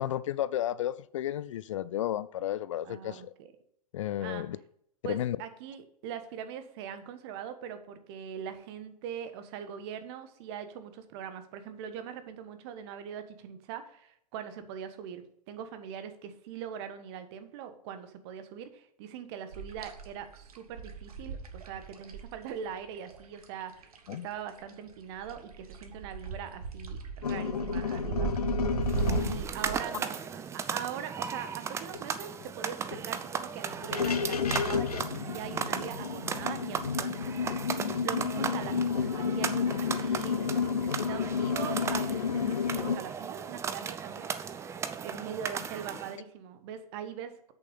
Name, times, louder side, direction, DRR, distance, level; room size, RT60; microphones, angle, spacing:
voice 1, 0.0-3.3 3.9-4.6 5.0-5.4 24.1-24.3 29.1-29.4, left 12 dB, 50° left, 0.4 m, -33 dB
voice 2, 2.8-3.5 4.2-4.4 5.0-28.3 28.8-44.3 44.7-47.3, right 8 dB, 40° right, 1.3 m, -42 dB
sound 1, 19.5-24.3 24.6-29.8, right 5 dB, 65° right, 1.5 m, -36 dB
sound 2, 27.2-29.3 31.9-32.0 32.4-32.5 32.9-33.0 33.7-43.0, left 6 dB, 70° left, 0.9 m, -31 dB
sound 3, 28.8-46.2, right 6 dB, 15° right, 0.6 m, -36 dB
8.3 x 6.8 x 5.3 m
figure-of-eight pair, 105°, 20 cm